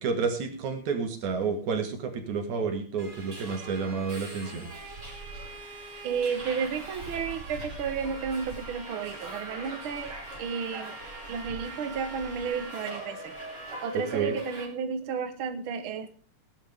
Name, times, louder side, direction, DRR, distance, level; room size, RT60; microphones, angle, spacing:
voice 1, 0.0-4.7 14.1-14.3, right 5 dB, 80° right, 4 dB, 3.4 m, -30 dB
Subway metro underground, 3.0-14.6, right 2 dB, 35° right, 4.0 m, -41 dB
voice 2, 6.0-11.0 11.3-13.3 13.8-16.1, right 6 dB, 55° right, 8 dB, 1.8 m, -32 dB
17.5 x 11.5 x 3.6 m, 0.39 s
omnidirectional pair, 3.3 m